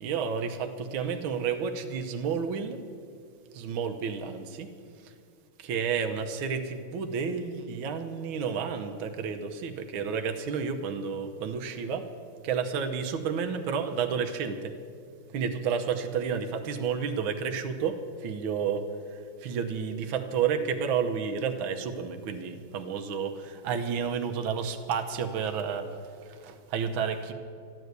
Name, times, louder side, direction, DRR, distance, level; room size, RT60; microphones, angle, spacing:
voice 1, 0.0-2.8 3.5-4.7 5.6-12.1 12.4-14.7 15.3-25.9 26.2-27.3, right 6 dB, 75° right, 6 dB, 1.6 m, -31 dB
13.5 x 10.5 x 8.1 m, 2.3 s
omnidirectional pair, 2.3 m